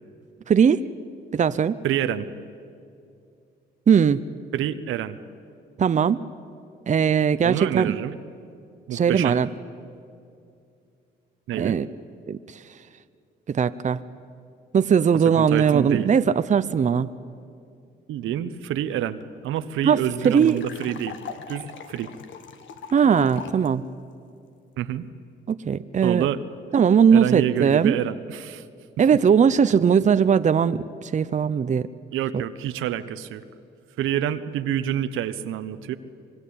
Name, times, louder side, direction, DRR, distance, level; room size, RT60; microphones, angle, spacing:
voice 1, 0.5-0.8 1.3-1.8 3.9-4.2 5.8-6.2 6.9-8.0 8.9-9.5 11.6-11.9 12.3-12.4 13.5-14.0 14.7-17.1 19.8-20.0 20.2-20.6 22.9-23.8 25.5-26.3 26.7-27.9 29.0-31.9, right 7 dB, 35° right, 13 dB, 0.7 m, -19 dB
voice 2, 1.8-2.3 4.5-5.2 7.4-8.2 8.9-9.4 11.5-11.8 15.4-16.1 18.1-21.2 21.5-22.1 24.8-25.0 26.0-26.4 27.1-28.6 32.1-33.4 34.0-36.0, right 11 dB, 85° right, 12 dB, 1.1 m, -27 dB
sound 1, 18.9-19.0 19.2-19.3 19.6-23.7, left 7 dB, 75° left, 1.8 m, -41 dB
25.5 x 21.0 x 8.6 m, 2.5 s
cardioid pair, 90°, 20 cm